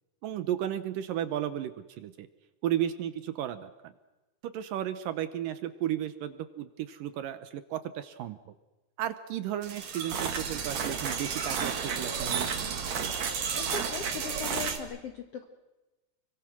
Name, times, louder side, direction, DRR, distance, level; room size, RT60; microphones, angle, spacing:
voice 1, 0.2-2.3 2.6-3.9 4.4-8.4 9.0-12.8, right 11 dB, 70° right, 11 dB, 2.2 m, -34 dB
sound 1, 9.6-14.8, right 6 dB, 50° right, 2.7 m, -32 dB
voice 2, 13.5-15.5, left 7 dB, 60° left, 6 dB, 1.7 m, -39 dB
29.5 x 23.0 x 6.2 m, 1.1 s
omnidirectional pair, 4.7 m